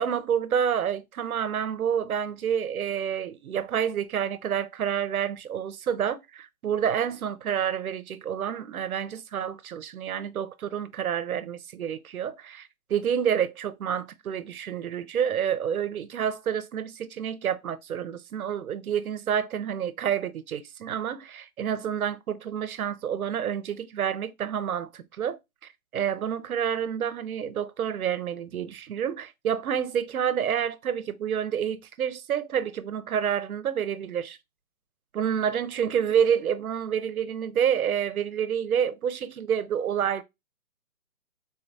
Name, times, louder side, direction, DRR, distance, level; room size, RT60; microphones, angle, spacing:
voice 1, 0.0-25.4 25.9-34.4 35.1-40.2, right 8 dB, 75° right, 0.6 m, -28 dB
3.8 x 2.2 x 2.6 m
hypercardioid pair, 155°, 43 cm